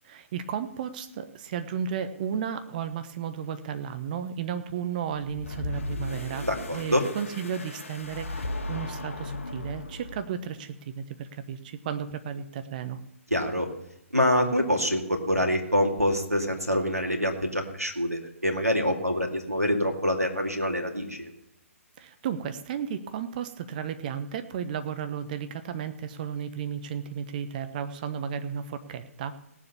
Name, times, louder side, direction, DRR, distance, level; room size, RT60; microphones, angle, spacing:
voice 1, 0.0-13.0 22.0-29.3, right 8 dB, 35° right, 10 dB, 1.2 m, -34 dB
sound 1, 5.3-10.4, left 2 dB, 65° left, 2.1 m, -36 dB
voice 2, 6.4-7.0 13.3-13.7 14.1-21.3, equal, 90° right, 3 dB, 2.4 m, -26 dB
17.5 x 7.5 x 7.0 m, 0.80 s
figure-of-eight pair, 130°, 8 cm